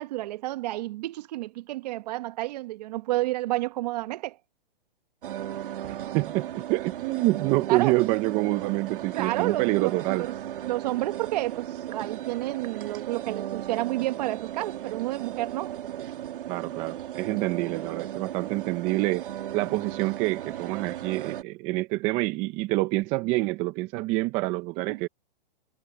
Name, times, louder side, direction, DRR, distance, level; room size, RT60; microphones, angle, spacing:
voice 1, 0.0-4.4 7.7-7.9 9.1-10.3 10.6-15.8 24.9-25.0, right 17 dB, 45° right, 1.4 m, -30 dB
sound 1, 5.2-21.4, right 11 dB, 65° right, 2.5 m, -36 dB
voice 2, 5.8-10.2 16.5-19.3 19.5-25.1, right 20 dB, 20° right, 0.7 m, -27 dB
hypercardioid pair, 155°, 29 cm